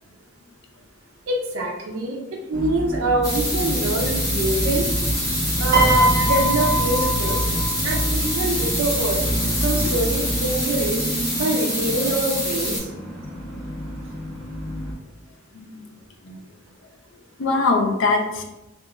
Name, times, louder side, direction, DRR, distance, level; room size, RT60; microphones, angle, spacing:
voice 1, 1.3-4.9 5.6-7.5 7.8-9.2 9.6-11.1 11.3-12.9, right 2 dB, 80° right, 0 dB, 0.4 m, -25 dB
sound 1, 2.5-14.9, equal, 5° left, 0.6 m, -28 dB
sound 2, 3.2-12.8, equal, 20° left, 1.3 m, -26 dB
Piano, 5.7-8.1 9.1-9.4, right 1 dB, 45° right, 0.8 m, -22 dB
voice 2, 17.4-18.4, left 3 dB, 70° left, 3 dB, 0.4 m, -22 dB
2.9 x 2.4 x 2.3 m, 0.98 s
head